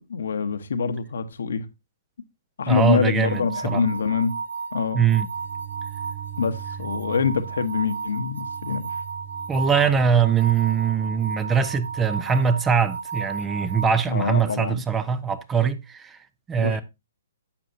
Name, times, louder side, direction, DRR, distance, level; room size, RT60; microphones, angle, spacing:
voice 1, 0.1-1.7 2.6-4.4 4.7-5.0 6.4-8.9 14.1-14.8 16.6-16.8, left 5 dB, 70° left, 1.1 m, -25 dB
voice 2, 2.7-3.8 4.9-5.3 9.5-16.2 16.5-16.8, right 7 dB, 15° right, 0.7 m, -22 dB
sound 1, 3.2-14.0, right 5 dB, 80° right, 6.1 m, -34 dB
sound 2, 5.3-12.5, right 10 dB, 55° right, 0.9 m, -41 dB
11.5 x 7.5 x 2.7 m
hypercardioid pair, 135°, 0 cm